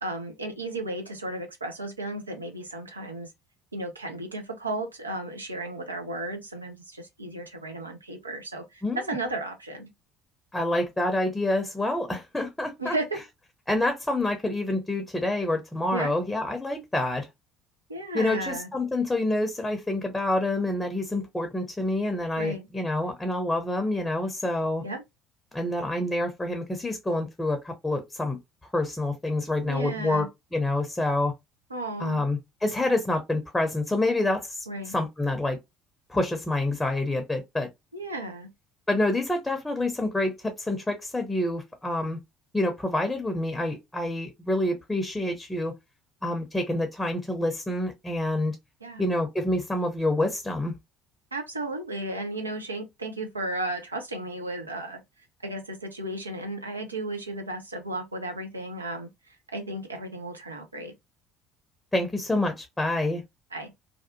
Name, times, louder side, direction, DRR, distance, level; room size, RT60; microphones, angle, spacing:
voice 1, 0.0-3.3 3.7-9.9 12.8-13.2 15.9-16.1 17.9-18.7 22.4-22.7 24.8-25.0 29.7-30.3 31.7-32.2 34.7-34.9 37.9-38.5 48.8-49.0 51.3-55.0 55.4-60.9 63.5-63.7, right 2 dB, 85° right, 0.5 m, -34 dB
voice 2, 8.8-9.2 10.5-12.9 13.7-17.3 18.1-24.8 25.5-28.4 28.7-31.3 32.0-35.6 36.1-37.7 38.9-42.2 42.5-45.7 46.2-48.6 49.0-50.7 61.9-63.2, left 2 dB, 10° left, 0.6 m, -27 dB
2.6 x 2.2 x 2.6 m
figure-of-eight pair, 60°, 0 cm